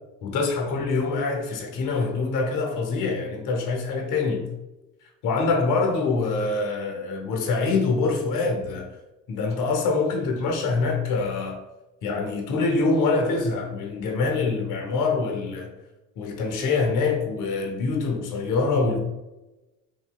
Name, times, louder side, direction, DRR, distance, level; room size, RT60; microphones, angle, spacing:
voice 1, 0.2-4.5 5.2-8.9 9.3-11.6 12.0-15.7 16.2-19.0, left 3 dB, 60° left, 0.8 m, -25 dB
3.1 x 2.8 x 2.3 m
supercardioid pair, 70°, 36 cm